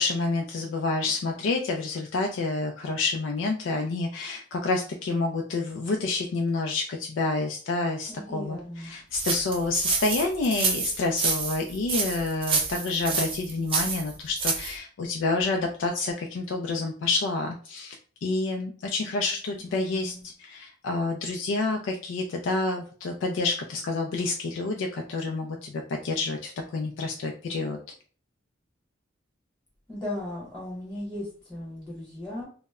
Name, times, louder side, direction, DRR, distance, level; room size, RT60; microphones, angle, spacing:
voice 1, 0.0-8.6 8.8-18.0 18.2-20.1 20.4-27.8, left 3 dB, 80° left, 2 dB, 0.3 m, -28 dB
voice 2, 8.1-9.0 19.6-20.3 29.9-32.4, left 1 dB, 5° left, -6 dB, 1.0 m, -37 dB
sound 1, 9.1-14.8, right 5 dB, 30° right, 0.4 m, -28 dB
2.1 x 2.0 x 3.5 m, 0.41 s
head